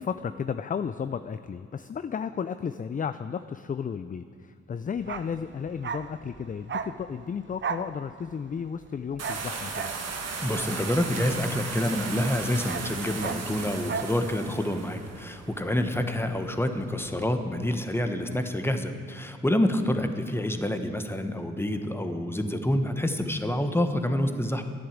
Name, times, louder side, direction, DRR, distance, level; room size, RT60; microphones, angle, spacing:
voice 1, 0.0-9.9 15.9-16.1 19.9-20.1, left 7 dB, 30° left, 11 dB, 0.4 m, -33 dB
Bark, 5.0-12.0 12.3-14.2 14.5-14.6, right 6 dB, 40° right, 0.7 m, -37 dB
sound 1, 9.2-17.3, right 4 dB, 60° right, 1.6 m, -37 dB
voice 2, 10.4-24.6, left 1 dB, 10° left, 7 dB, 1.2 m, -27 dB
11.5 x 8.7 x 7.4 m, 2.4 s
supercardioid pair, 55°, 29 cm